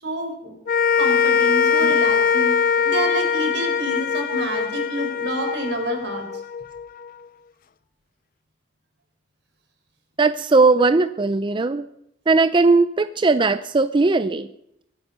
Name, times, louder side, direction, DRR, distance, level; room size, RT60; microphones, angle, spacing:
voice 1, 0.0-0.5 1.0-2.5 2.8-6.2, right 1 dB, 80° right, 3 dB, 4.2 m, -28 dB
sound 1, 0.7-7.1, left 6 dB, 55° left, 0.5 m, -21 dB
voice 2, 10.2-11.9 12.3-14.5, right 3 dB, 30° right, 12 dB, 0.5 m, -18 dB
22.5 x 9.2 x 5.4 m, 0.77 s
head